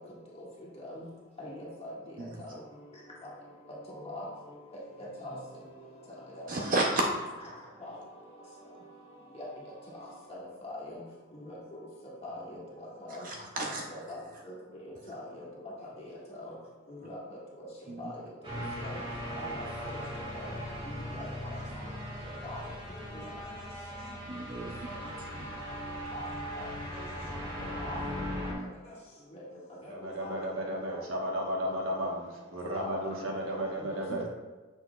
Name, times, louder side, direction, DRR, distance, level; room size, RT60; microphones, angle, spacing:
voice 1, 1.4-1.9 4.0-4.3 5.0-5.4 6.4-6.5 7.8-8.0 9.3-9.5 10.6-11.0 11.4-11.9 12.2-12.6 13.1-13.3 13.9-14.2 14.5-14.6 14.9-15.4 16.0-16.1 16.4-16.5 16.9-17.2 18.0-18.2 18.8-19.0 19.4-19.5 19.8-20.0 20.4-20.5 20.9-21.2 22.5-22.6 22.9-23.3 26.1-26.3 27.8-28.0 29.3-29.4 30.2-30.3 32.7-33.2 33.9-34.0, left 1 dB, 30° left, -5 dB, 1.7 m, -42 dB
voice 2, 6.5-7.1 7.4-7.5 13.1-14.1 15.0-15.1 17.9-18.1 18.6-18.7 24.3-25.6 34.1-34.3, right 2 dB, 40° right, 0 dB, 0.6 m, -33 dB
sound 1, 18.4-28.5, equal, 25° right, 1.7 m, -38 dB
voice 3, 29.9-32.2 32.5-34.3, equal, 70° right, -1 dB, 1.2 m, -33 dB
6.9 x 6.3 x 2.3 m, 1.2 s
head